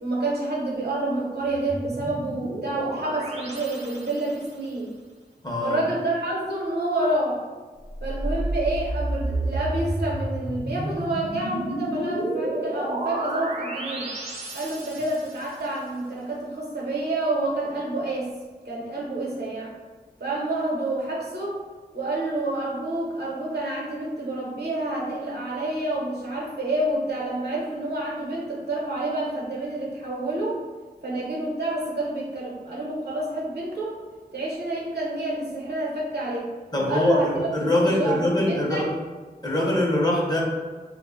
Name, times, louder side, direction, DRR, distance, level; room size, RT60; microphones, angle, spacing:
voice 1, 0.0-4.9 5.6-7.4 8.0-14.1 14.5-18.3 18.6-19.7 20.2-21.6 21.9-30.6 31.0-34.0 34.3-36.5 36.9-38.9, right 2 dB, 70° right, -4 dB, 0.8 m, -28 dB
sound 1, 1.4-4.6 7.9-15.6, right 1 dB, 40° right, 0.6 m, -31 dB
voice 2, 5.4-5.8 36.7-38.9 39.4-40.4, left 1 dB, 25° left, -3 dB, 0.6 m, -23 dB
2.1 x 2.0 x 3.5 m, 1.4 s
wide cardioid pair, 65°, 17 cm